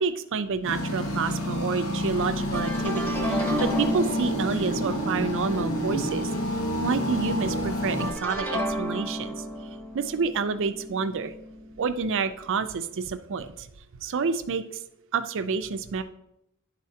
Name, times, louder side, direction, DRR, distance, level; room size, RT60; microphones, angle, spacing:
voice 1, 0.0-6.3 6.8-9.4 9.9-11.3 11.8-13.7 14.0-14.6 15.1-16.0, right 5 dB, 60° right, 10 dB, 0.5 m, -29 dB
sound 1, 0.6-8.1, equal, 75° left, 1.1 m, -29 dB
sound 2, 2.2-7.4 8.0-12.0, equal, 10° left, 1.0 m, -33 dB
10.5 x 4.1 x 2.8 m, 0.79 s
head